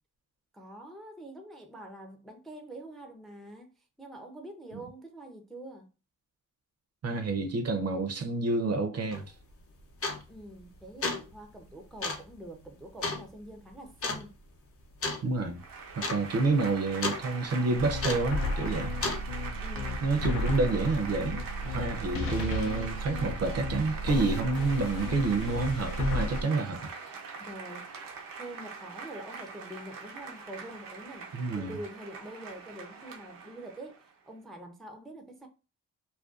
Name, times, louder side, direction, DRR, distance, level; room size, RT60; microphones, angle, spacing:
voice 1, 0.5-3.7 4.0-5.9 10.3-14.3 19.6-20.1 27.4-27.9 28.4-31.3 31.6-35.5, right 1 dB, ahead, 0.4 m, -45 dB
voice 2, 7.0-9.2 15.2-15.6 15.9-19.0 20.0-26.9 31.3-31.8, right 3 dB, 50° right, 0.5 m, -29 dB
sound 1, 9.1-9.2 10.0-10.4 10.8-11.3 12.0-12.3 13.0-13.2 14.0-14.3 15.0-15.3 15.6-15.7 15.9-16.2 16.5-17.2 18.0-18.4 19.0-19.2, left 3 dB, 45° left, 0.6 m, -32 dB
Applause / Crowd, 15.5-34.1, right 5 dB, 90° right, 0.7 m, -43 dB
sound 2, 17.7-26.4, left 1 dB, 85° left, 0.5 m, -33 dB
2.5 x 2.2 x 2.3 m
cardioid pair, 105°, 33 cm